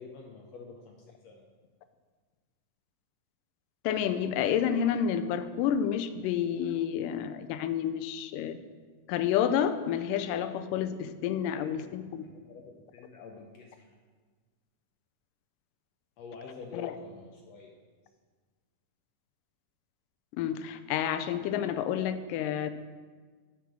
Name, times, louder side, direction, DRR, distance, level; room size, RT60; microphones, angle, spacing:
voice 1, 0.0-1.4 11.4-13.9 16.2-17.7, left 4 dB, 75° left, 1 dB, 1.6 m, -48 dB
voice 2, 3.8-8.6 9.1-12.2 16.7-16.9 20.3-22.7, left 9 dB, 90° left, 10 dB, 2.2 m, -29 dB
8.4 x 5.9 x 6.1 m, 1.5 s
omnidirectional pair, 3.7 m